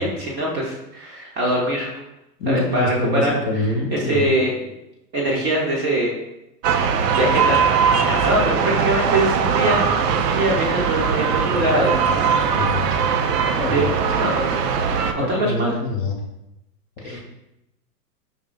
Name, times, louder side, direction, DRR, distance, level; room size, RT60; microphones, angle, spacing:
voice 1, 0.0-1.9 2.5-4.8 5.1-6.1 6.8-9.8 10.2-11.9 12.4-12.7 13.7-14.7 15.1-15.8 17.0-17.2, right 1 dB, 20° right, -3 dB, 0.6 m, -23 dB
voice 2, 2.4-4.3 12.5-12.8 13.6-13.9 15.2-16.2 17.0-17.2, left 2 dB, 45° left, 2 dB, 0.8 m, -25 dB
sound 1, 6.6-15.1, right 6 dB, 80° right, 0.6 m, -20 dB
5.1 x 2.7 x 2.4 m, 0.88 s
hypercardioid pair, 115°, 48 cm